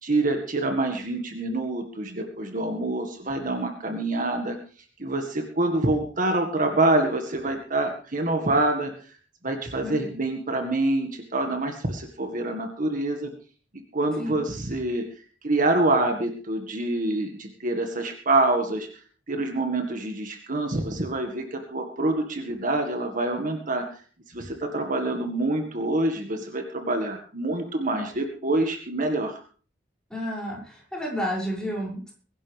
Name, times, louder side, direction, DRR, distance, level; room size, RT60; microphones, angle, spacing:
voice 1, 0.0-4.6 5.0-8.9 9.4-13.3 13.9-15.0 15.4-18.9 19.3-23.8 24.3-29.4, right 2 dB, 45° right, 4 dB, 1.9 m, -26 dB
voice 2, 30.1-32.1, equal, 5° left, -3 dB, 6.7 m, -31 dB
23.0 x 11.0 x 3.5 m, 0.40 s
head